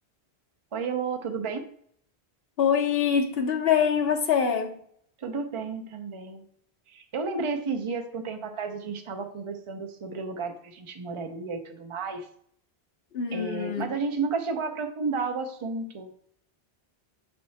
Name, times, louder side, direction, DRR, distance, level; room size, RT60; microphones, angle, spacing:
voice 1, 0.7-1.7 5.2-6.4 6.9-12.3 13.3-16.1, right 4 dB, 35° right, 0.6 m, -32 dB
voice 2, 2.6-4.8 13.1-13.9, left 7 dB, 65° left, 1.0 m, -24 dB
6.6 x 3.5 x 4.1 m
omnidirectional pair, 1.1 m